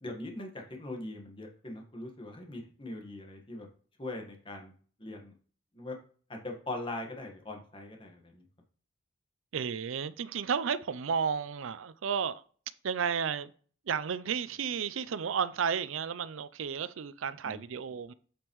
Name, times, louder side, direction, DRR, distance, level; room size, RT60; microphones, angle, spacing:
voice 1, 0.0-3.7 4.0-4.7 5.0-5.3 5.7-6.0 6.3-8.4 17.4-17.6, left 2 dB, 25° left, 1.5 m, -41 dB
voice 2, 9.5-12.4 12.8-13.5 13.9-18.1, right 6 dB, 85° right, 0.5 m, -32 dB
8.7 x 5.3 x 3.1 m
head